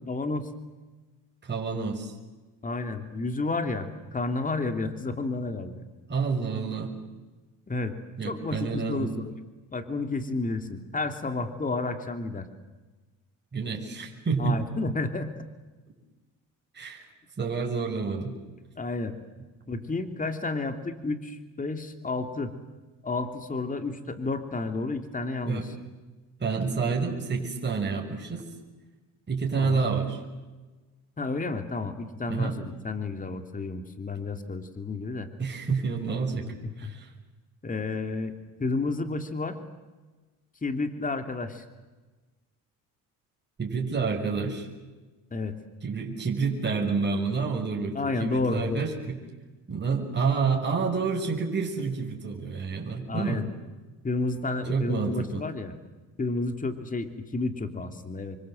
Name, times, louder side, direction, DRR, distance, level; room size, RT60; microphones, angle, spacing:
voice 1, 0.1-0.5 2.6-5.9 7.7-8.0 8.2-9.1 9.7-12.5 14.4-15.3 18.8-19.2 19.7-22.5 23.0-25.7 29.5-29.8 31.2-35.3 36.8-36.9 37.6-38.3 38.6-39.6 40.6-41.6 45.3-45.6 47.9-49.0 53.1-53.5 54.0-55.7 56.2-58.4, left 3 dB, 20° left, 8 dB, 3.0 m, -31 dB
voice 2, 1.4-2.1 6.1-6.9 8.2-9.1 13.5-14.6 16.7-17.1 17.4-18.3 25.5-25.7 26.4-28.4 29.3-30.2 32.3-32.5 35.4-37.1 43.6-44.7 45.8-49.2 49.7-53.5 54.7-55.4, right 5 dB, 30° right, 1 dB, 5.8 m, -29 dB
28.5 x 24.5 x 7.9 m, 1.2 s
cardioid pair, 100°, 37 cm